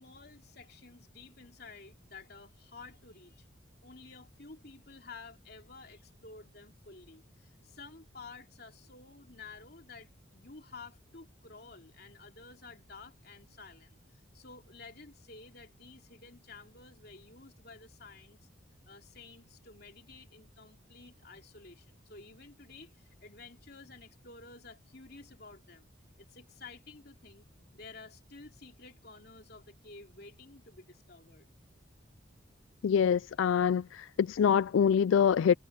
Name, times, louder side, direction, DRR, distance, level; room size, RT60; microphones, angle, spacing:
voice 1, 0.0-3.5 3.8-18.4 18.9-25.9 26.2-27.5 27.7-31.5, left 4 dB, 55° left, 3.3 m, -52 dB
voice 2, 32.8-35.6, left 7 dB, 80° left, 0.3 m, -25 dB
head